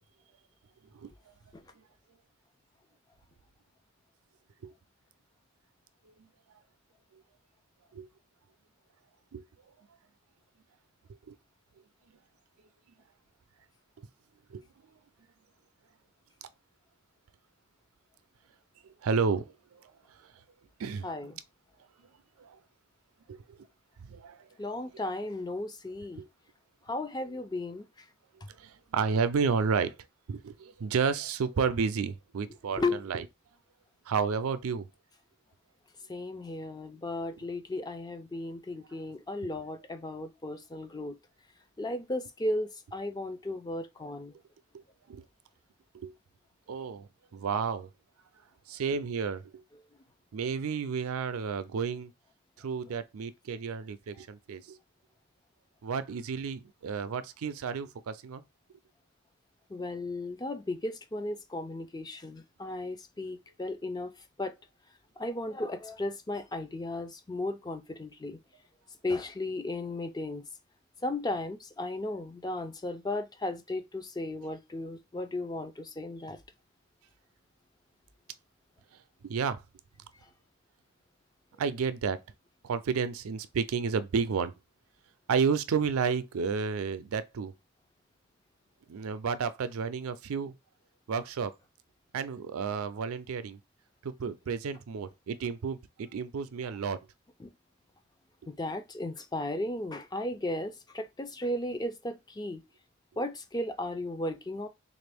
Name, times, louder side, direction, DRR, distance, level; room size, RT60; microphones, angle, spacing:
voice 1, 19.0-20.3 20.8-21.3 22.4-22.6 23.3-23.6 24.0-24.5 26.2-26.3 28.6-30.0 30.3-33.2 34.1-34.9 39.4-39.5 44.7-44.8 45.1-45.2 45.9-46.1 46.7-47.9 48.7-49.6 50.3-52.1 52.6-54.8 55.8-58.4 79.2-79.6 81.6-82.2 82.6-84.5 85.3-87.5 88.9-90.5 91.1-91.5 92.1-93.6 94.0-97.0, right 5 dB, 75° right, 0.4 m, -31 dB
voice 2, 21.0-21.3 24.6-26.2 26.9-27.8 32.8-33.0 36.1-41.2 41.8-44.3 59.7-64.1 64.4-64.5 65.2-68.4 69.0-70.4 71.0-76.4 97.4-97.5 98.6-102.6 103.2-104.7, left 2 dB, 20° left, 0.3 m, -35 dB
3.7 x 2.5 x 3.4 m
head